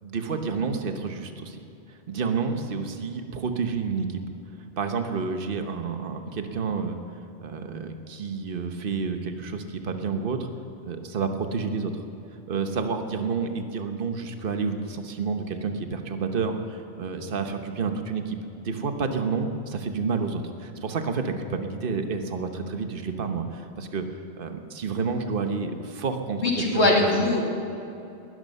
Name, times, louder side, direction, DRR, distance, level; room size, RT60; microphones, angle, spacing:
voice 1, 0.0-1.6 2.1-4.2 4.8-7.0 7.4-10.5 10.8-11.9 12.5-18.4 18.6-24.0 24.4-27.2, right 5 dB, 50° right, 6 dB, 1.2 m, -29 dB
voice 2, 26.4-27.6, left 2 dB, 65° left, -1 dB, 2.8 m, -22 dB
20.0 x 13.0 x 5.5 m, 2.7 s
omnidirectional pair, 1.2 m